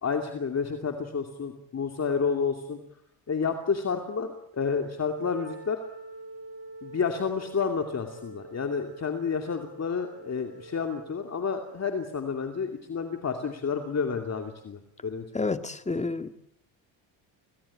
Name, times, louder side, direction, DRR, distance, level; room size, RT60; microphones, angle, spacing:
voice 1, 0.0-2.8 3.3-5.8 6.8-15.5, left 5 dB, 35° left, 4 dB, 2.7 m, -30 dB
Wind instrument woodwind instrument, 5.1-11.4, right 2 dB, 30° right, 4.4 m, -46 dB
voice 2, 15.3-16.3, left 3 dB, 15° left, 9 dB, 1.9 m, -29 dB
27.0 x 18.0 x 8.6 m, 0.72 s
cardioid pair, 100°, 47 cm